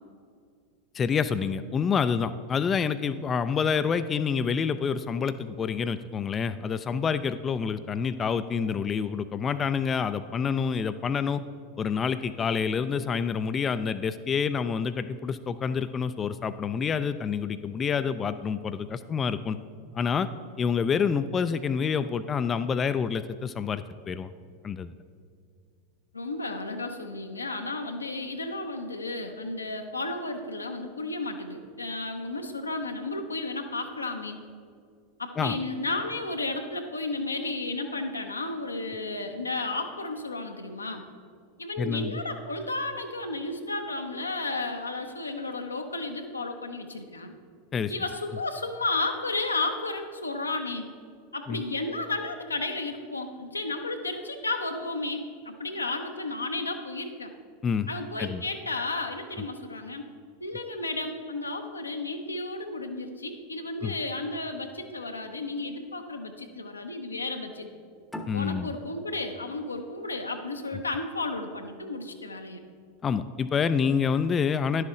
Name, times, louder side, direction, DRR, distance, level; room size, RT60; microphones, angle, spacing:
voice 1, 0.9-11.4 11.8-19.6 19.9-20.3 20.6-24.3 24.6-24.9 35.4-35.6 41.8-42.2 47.7-47.9 51.5-51.6 57.6-57.9 58.2-58.4 63.8-63.9 68.3-68.7 73.0-74.8, left 6 dB, 25° left, 12 dB, 0.3 m, -27 dB
voice 2, 26.1-34.4 35.2-41.0 41.6-47.3 47.9-50.9 51.3-57.3 57.9-60.1 60.4-67.7 68.3-72.6, left 2 dB, 90° left, 5 dB, 0.7 m, -33 dB
sound 1, 68.1-71.3, equal, 5° left, 0.8 m, -44 dB
10.5 x 7.6 x 3.7 m, 2.2 s
figure-of-eight pair, 90°, 0 cm